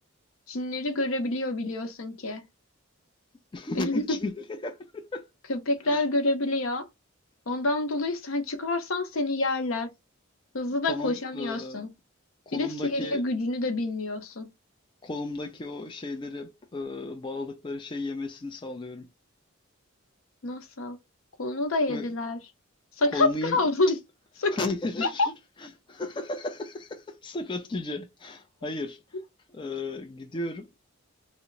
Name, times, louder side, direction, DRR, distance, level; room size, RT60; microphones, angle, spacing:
voice 1, 0.5-2.4 3.8-4.2 5.5-6.9 7.5-9.9 10.5-11.9 12.5-14.5 20.4-21.0 21.4-22.4 23.0-24.0 24.4-24.6 25.0-25.3, left 2 dB, 80° left, 0.7 m, -27 dB
voice 2, 3.5-5.3 5.8-6.0 10.9-11.8 12.5-13.2 15.0-19.1 21.9-22.1 23.1-23.6 24.5-25.3 25.9-29.0 29.5-30.7, left 2 dB, 25° left, 0.3 m, -34 dB
2.8 x 2.1 x 3.8 m
head